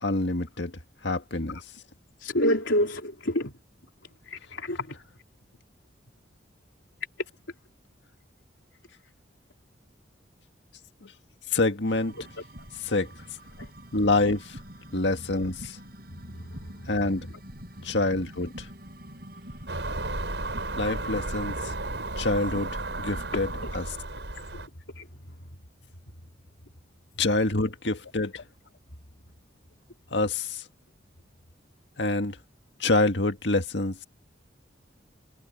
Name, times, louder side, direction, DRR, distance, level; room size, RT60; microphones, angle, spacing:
voice 1, 0.0-0.7 1.0-1.6 11.0-11.1 11.5-12.1 12.8-13.1 13.9-14.6 14.9-15.8 16.9-17.3 17.8-18.7 20.8-21.7 22.2-22.7 23.0-23.5 23.7-23.9 27.2-28.3 30.1-30.6 32.0-32.4 32.8-34.0, left 2 dB, 70° left, 1.9 m, -26 dB
voice 2, 2.2-3.5 4.3-5.0 13.6-13.7 16.5-16.6 23.5-23.7 24.5-24.6 25.0-25.1, equal, 90° left, 3.5 m, -28 dB
sound 1, 11.8-23.8, equal, 55° right, 7.4 m, -46 dB
Car passing by / Engine, 19.7-24.7, right 2 dB, 70° right, 6.2 m, -33 dB
head